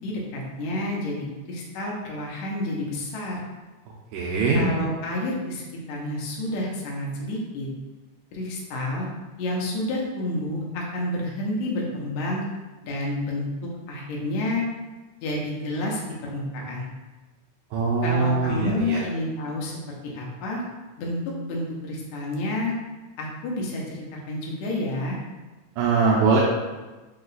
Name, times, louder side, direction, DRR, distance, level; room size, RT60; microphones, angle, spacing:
voice 1, 0.0-3.4 4.5-7.7 8.3-9.1 9.4-12.4 12.8-14.6 15.2-16.8 18.0-19.7 20.0-20.6 21.0-21.2 21.5-22.7 23.2-25.2, left 1 dB, 70° left, -2 dB, 2.0 m, -29 dB
voice 2, 4.1-4.6 17.7-19.0 25.8-26.4, right 4 dB, 80° right, -4 dB, 2.1 m, -22 dB
5.5 x 2.4 x 3.9 m, 1.2 s
omnidirectional pair, 3.7 m